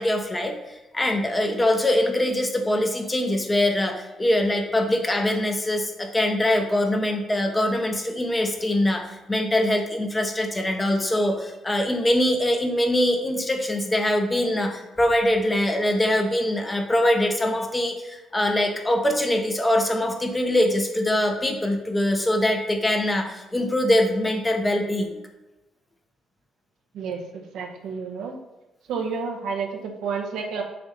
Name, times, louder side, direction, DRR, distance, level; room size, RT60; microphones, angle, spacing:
voice 1, 0.0-25.2, left 1 dB, 15° left, 4 dB, 0.9 m, -23 dB
voice 2, 27.5-28.3 28.9-30.6, right 5 dB, 85° right, 2 dB, 1.0 m, -30 dB
6.7 x 2.6 x 5.4 m, 1.0 s
cardioid pair, 90°, 0 cm